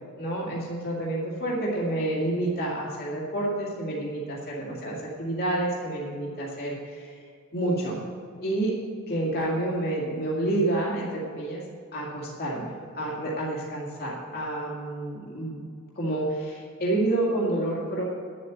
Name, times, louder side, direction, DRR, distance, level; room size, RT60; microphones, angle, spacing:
voice 1, 0.2-7.2 7.5-8.0 8.4-8.7 9.1-11.6 11.9-12.7 12.9-15.6 16.0-18.0, right 1 dB, 45° left, -5 dB, 2.1 m, -29 dB
9.3 x 7.6 x 8.1 m, 2.3 s
head